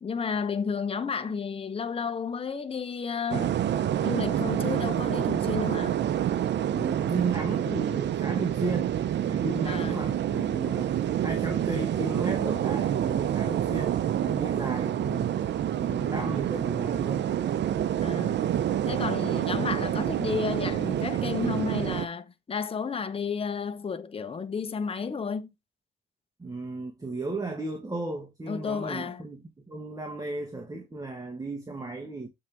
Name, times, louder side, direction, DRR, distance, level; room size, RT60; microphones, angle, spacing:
voice 1, 0.0-3.6 4.0-6.0 9.6-10.0 18.0-18.5 18.9-25.5 28.5-29.2, left 6 dB, 30° left, 0.9 m, -32 dB
sound 1, 3.3-22.1, right 10 dB, 60° right, 0.7 m, -27 dB
voice 2, 6.7-8.9 9.2-11.0 11.2-15.3 15.7-17.3 26.4-32.3, right 3 dB, 15° right, 1.5 m, -34 dB
7.4 x 3.7 x 4.5 m
cardioid pair, 90°, 20 cm